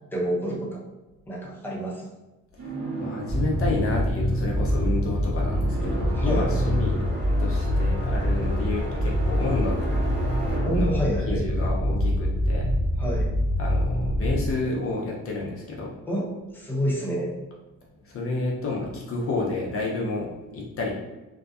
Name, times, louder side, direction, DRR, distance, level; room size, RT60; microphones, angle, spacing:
voice 1, 0.1-0.8 1.3-2.0 6.1-6.6 10.6-11.4 13.0-13.3 16.1-17.3, equal, 5° left, -4 dB, 0.7 m, -28 dB
sound 1, 2.6-12.5, right 2 dB, 55° right, 1.2 m, -36 dB
voice 2, 3.0-7.0 7.4-10.1 10.7-11.0 11.3-12.7 13.6-15.9 18.0-20.9, left 3 dB, 50° left, -2 dB, 0.6 m, -30 dB
sound 2, 3.3-14.5, equal, 20° right, 1.0 m, -25 dB
2.6 x 2.2 x 2.3 m, 1.1 s
cardioid pair, 90°, 30 cm